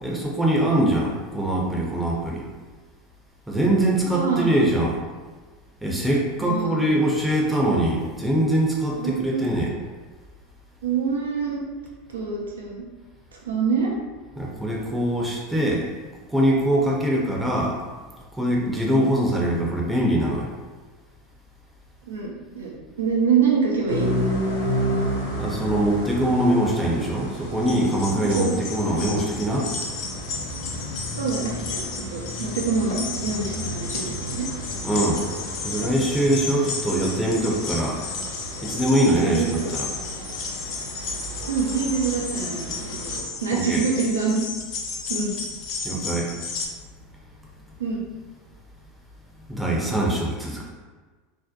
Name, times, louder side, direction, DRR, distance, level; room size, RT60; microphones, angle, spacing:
voice 1, 0.0-2.4 3.5-5.0 5.8-9.7 14.4-15.9 16.3-17.8 18.3-20.5 25.4-29.7 34.8-35.3 35.6-38.0 38.6-39.9 41.4-41.5 43.5-43.8 45.8-46.3 49.5-50.7, right 1 dB, 5° right, -3 dB, 0.5 m, -23 dB
voice 2, 4.0-4.6 6.4-6.9 9.0-9.4 10.8-11.6 12.1-12.8 13.5-13.9 22.1-22.7 23.0-24.1 28.2-28.5 31.2-34.5 39.2-39.7 41.5-44.4 45.1-45.3 47.8-48.0, right 5 dB, 85° right, -2 dB, 0.5 m, -25 dB
sound 1, 23.9-43.2, equal, 90° left, 0.7 m, -32 dB
sound 2, 27.6-46.7, left 4 dB, 55° left, 0.4 m, -33 dB
2.6 x 2.1 x 2.4 m, 1.3 s
hypercardioid pair, 90°, 0 cm